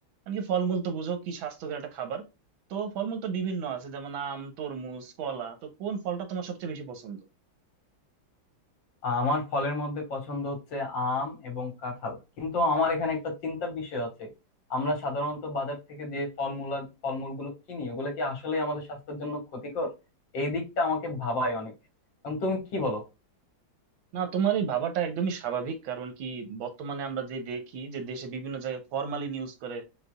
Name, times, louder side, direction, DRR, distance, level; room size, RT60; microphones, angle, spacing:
voice 1, 0.3-2.2 2.7-7.2 24.1-29.8, right 7 dB, 90° right, 1.7 m, -32 dB
voice 2, 9.0-14.3 14.7-19.9 20.3-21.7 22.2-23.0, left 2 dB, 70° left, 2.1 m, -30 dB
6.6 x 2.4 x 2.3 m
omnidirectional pair, 2.1 m